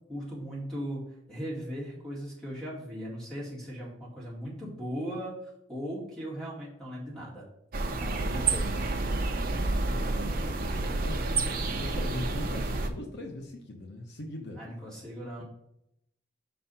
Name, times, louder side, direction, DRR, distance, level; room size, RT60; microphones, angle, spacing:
voice 1, 0.1-5.3 5.7-7.4 8.0-8.8 14.6-15.4, equal, 5° left, -6 dB, 2.3 m, -38 dB
sound 1, 7.7-12.9, right 2 dB, 45° right, 0.6 m, -29 dB
voice 2, 9.3-11.5 11.8-14.6, left 1 dB, 55° left, 3 dB, 0.8 m, -41 dB
5.3 x 4.2 x 5.5 m, 0.78 s
head